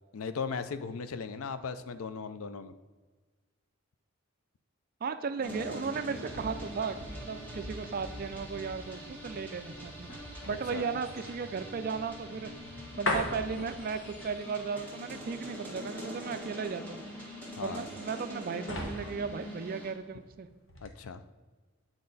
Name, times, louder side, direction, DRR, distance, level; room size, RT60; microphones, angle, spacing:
voice 1, 0.1-2.7 10.5-10.9 17.6-17.8 20.8-21.2, left 5 dB, 75° left, 11 dB, 0.5 m, -37 dB
voice 2, 5.0-10.1 10.5-12.5 13.0-17.0 17.6-20.5, right 5 dB, 40° right, 9 dB, 0.3 m, -36 dB
sound 1, 5.4-19.9, equal, 10° left, 1.4 m, -44 dB
sound 2, 5.5-12.9, right 1 dB, 25° left, 1.8 m, -52 dB
sound 3, 6.3-20.3 20.7-20.9, left 1 dB, 60° left, 1.1 m, -41 dB
8.6 x 4.7 x 4.0 m, 1.4 s
head